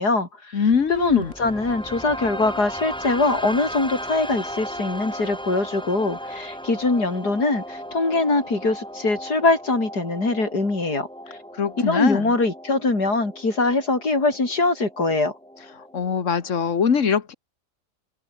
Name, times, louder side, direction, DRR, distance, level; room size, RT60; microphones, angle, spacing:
voice 1, 0.0-0.6 0.9-11.1 11.8-15.3, left 3 dB, 75° left, 5.7 m, -22 dB
voice 2, 0.5-1.3 11.6-12.3 15.9-17.3, left 6 dB, 50° left, 1.9 m, -22 dB
sound 1, 0.7-16.7, equal, 5° left, 5.5 m, -36 dB
omnidirectional pair, 1.8 m